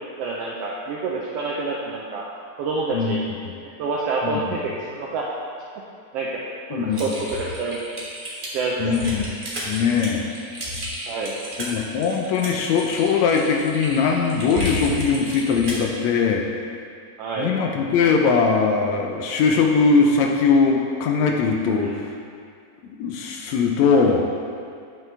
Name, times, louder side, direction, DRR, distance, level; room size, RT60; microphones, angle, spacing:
voice 1, 0.2-2.3 2.6-3.3 3.8-5.3 6.1-6.3 6.7-7.8 8.5-9.0 11.1-11.4 17.2-17.6 21.8-21.9, right 3 dB, 85° right, -3 dB, 1.4 m, -27 dB
voice 2, 6.7-7.1 8.8-9.3 9.6-10.3 11.6-16.6 17.4-22.1 23.0-24.2, left 5 dB, 80° left, 2 dB, 1.7 m, -20 dB
Typing, 6.9-15.9, equal, 45° right, 0.6 m, -32 dB
9.1 x 6.0 x 3.3 m, 2.3 s
omnidirectional pair, 3.4 m